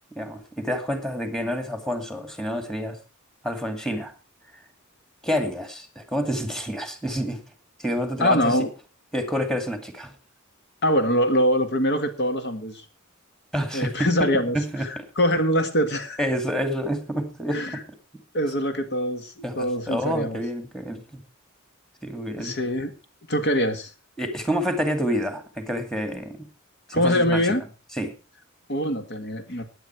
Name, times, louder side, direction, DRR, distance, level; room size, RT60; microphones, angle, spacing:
voice 1, 0.2-3.0 3.4-4.1 5.2-7.4 7.8-8.6 9.1-10.1 13.5-14.3 14.5-15.0 16.2-17.8 19.4-21.2 22.0-22.6 24.2-26.5 26.9-27.4 28.0-28.1, equal, ahead, 8 dB, 2.3 m, -28 dB
voice 2, 8.2-8.7 10.8-12.8 13.7-16.2 17.5-17.8 18.3-20.4 22.4-22.9 23.3-23.9 26.9-27.6 28.7-29.7, equal, 55° left, 8 dB, 1.7 m, -23 dB
16.0 x 10.0 x 4.5 m, 0.31 s
head